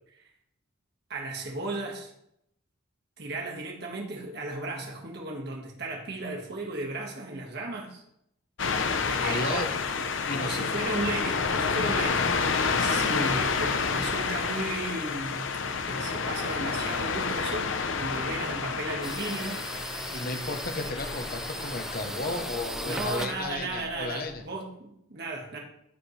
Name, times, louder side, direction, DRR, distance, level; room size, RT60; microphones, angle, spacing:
voice 1, 1.1-2.1 3.2-8.0 9.0-9.7 10.3-15.5 15.9-19.6 20.3-20.6 22.8-25.6, right 2 dB, 55° right, 0 dB, 1.7 m, -35 dB
sound 1, 8.6-23.1, left 5 dB, 70° left, 0.7 m, -29 dB
voice 2, 9.2-9.7 10.3-10.7 20.1-24.4, left 2 dB, 45° left, 6 dB, 1.0 m, -33 dB
sound 2, 19.0-24.5, right 1 dB, ahead, 0.3 m, -38 dB
14.5 x 5.2 x 3.3 m, 0.76 s
head